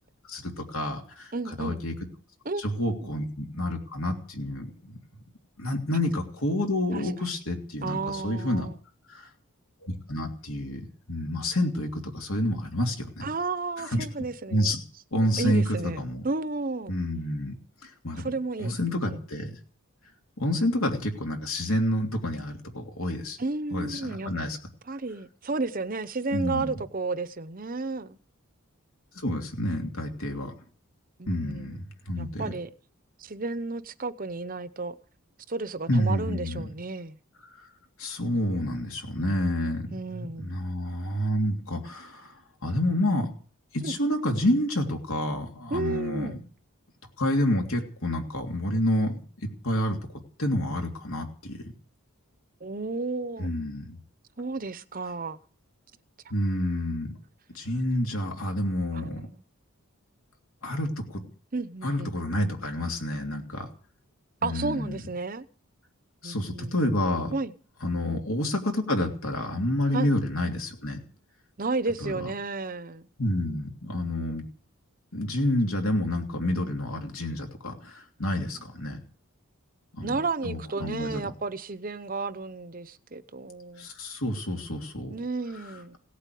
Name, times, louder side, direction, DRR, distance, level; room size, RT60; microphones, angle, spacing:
voice 1, 0.3-1.3 1.6-1.9 2.6-5.0 5.6-8.7 9.1-9.3 9.8-13.3 13.8-14.0 14.5-14.8 15.1-16.2 16.9-17.5 17.8-18.3 18.6-19.5 20.4-23.4 23.7-24.6 26.3-26.8 29.1-30.5 31.3-32.5 35.9-36.7 37.6-37.7 38.0-42.3 42.6-43.3 43.7-46.4 47.2-50.0 50.4-51.6 53.4-54.0 56.3-57.1 57.5-59.3 60.6-61.2 61.8-63.7 64.4-65.0 66.2-67.3 67.8-71.0 72.0-72.3 73.2-74.4 75.1-79.0 79.9-80.1 80.4-81.3 83.8-85.1 85.6-85.7, left 1 dB, 75° left, 3.1 m, -29 dB
voice 2, 1.3-1.8 2.4-2.6 3.0-3.1 6.9-7.1 7.8-8.7 13.2-14.7 15.4-16.9 18.1-18.7 19.1-19.2 23.4-24.3 24.9-28.2 31.2-31.8 32.2-32.7 33.2-34.9 35.5-37.2 39.9-40.5 43.8-44.0 45.7-46.4 52.6-53.5 54.4-55.4 58.9-59.4 61.5-62.1 64.4-65.5 66.2-66.9 67.3-67.5 69.9-70.1 71.6-73.1 80.0-83.9 85.1-86.0, right 3 dB, 40° right, 0.8 m, -32 dB
17.5 x 8.4 x 9.3 m
head